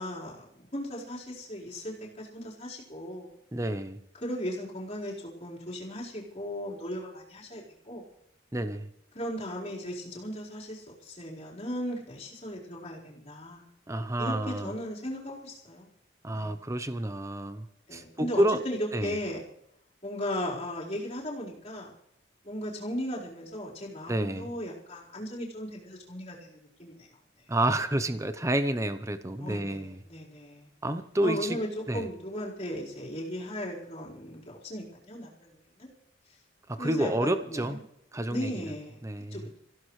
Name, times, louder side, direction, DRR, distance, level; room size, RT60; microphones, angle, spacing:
voice 1, 0.0-3.3 4.2-8.0 9.1-13.7 14.2-15.9 16.3-16.5 17.9-19.4 20.0-21.9 22.4-27.1 29.4-30.7 31.2-35.9 36.8-37.8 38.3-39.1 39.3-39.6, equal, 35° left, -6 dB, 4.5 m, -37 dB
voice 2, 3.5-4.0 8.5-8.9 13.9-14.7 16.2-17.7 17.9-18.6 18.9-19.2 24.1-24.5 27.5-30.0 30.8-31.6 31.9-32.1 36.7-37.8 38.1-38.7 39.0-39.5, right 1 dB, 15° right, 10 dB, 0.8 m, -29 dB
26.0 x 16.0 x 3.3 m, 0.74 s
head